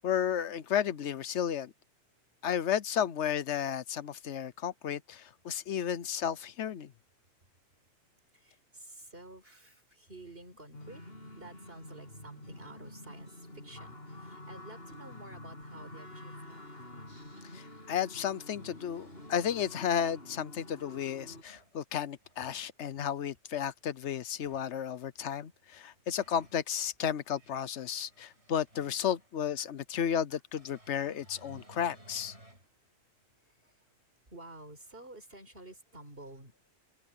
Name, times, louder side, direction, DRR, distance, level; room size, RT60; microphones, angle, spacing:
voice 1, 0.0-1.7 2.4-6.9 17.5-32.3, left 9 dB, 80° left, 1.1 m, -33 dB
voice 2, 8.3-11.0 11.4-16.6 33.6-33.7 34.3-36.7, right 2 dB, 55° right, 5.6 m, -51 dB
sound 1, 10.7-21.4, left 1 dB, 60° left, 6.5 m, -48 dB
sound 2, 18.4-20.0 21.0-21.7 22.2-22.7 24.3-24.7 25.7-26.6 27.2-29.4 30.6-32.7 33.2-33.3 34.8-34.9, right 1 dB, 75° right, 8.3 m, -58 dB
open air
omnidirectional pair, 1.2 m